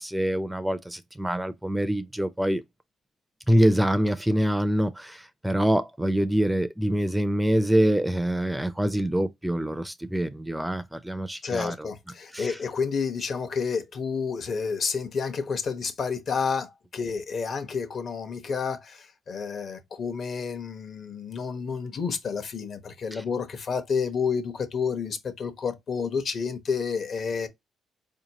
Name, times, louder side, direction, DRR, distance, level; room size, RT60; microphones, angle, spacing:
voice 1, 0.0-2.6 3.5-11.9 12.3-12.6 23.1-23.2, equal, 5° right, 0.4 m, -25 dB
voice 2, 11.4-27.5, left 5 dB, 55° left, 1.0 m, -30 dB
4.5 x 2.8 x 2.8 m
cardioid pair, 90°, 0 cm